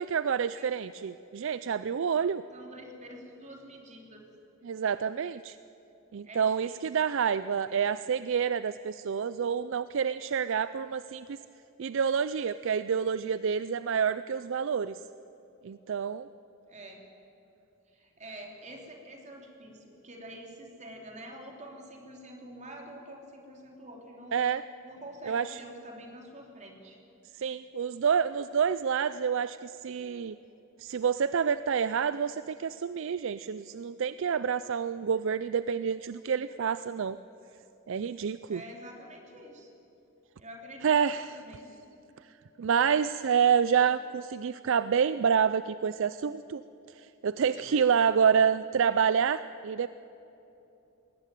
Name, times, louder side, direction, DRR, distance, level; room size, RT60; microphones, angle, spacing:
voice 1, 0.0-2.4 4.6-5.6 6.1-11.4 11.8-15.0 15.6-16.3 24.3-24.6 25.3-25.6 27.3-30.4 30.8-37.2 37.9-38.6 40.8-41.3 42.6-46.6 46.9-49.9, right 7 dB, 65° right, 14 dB, 0.4 m, -28 dB
voice 2, 2.5-4.3 6.2-6.8 7.7-7.9 16.7-17.0 17.9-24.4 24.8-27.0 38.5-39.7 40.4-41.7 47.5-48.0, right 1 dB, 35° right, 1 dB, 3.4 m, -47 dB
21.0 x 18.0 x 9.1 m, 3.0 s
head